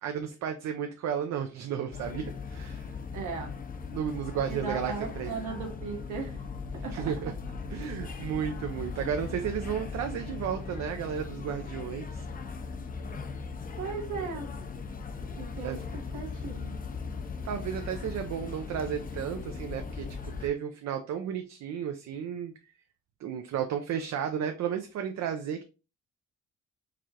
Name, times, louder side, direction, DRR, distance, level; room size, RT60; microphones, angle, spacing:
voice 1, 0.0-2.9 3.9-5.3 6.9-7.3 7.7-12.2 15.6-15.8 17.4-22.5 23.2-25.6, right 8 dB, 65° right, 6 dB, 0.5 m, -33 dB
sound 1, 1.9-20.5, left 5 dB, 30° left, 0.5 m, -38 dB
voice 2, 3.1-3.5 4.5-6.4 6.8-7.1 13.8-14.5 15.4-16.8, right 4 dB, 80° right, 0 dB, 1.3 m, -37 dB
4.8 x 2.4 x 2.8 m, 0.32 s
cardioid pair, 90°, 30 cm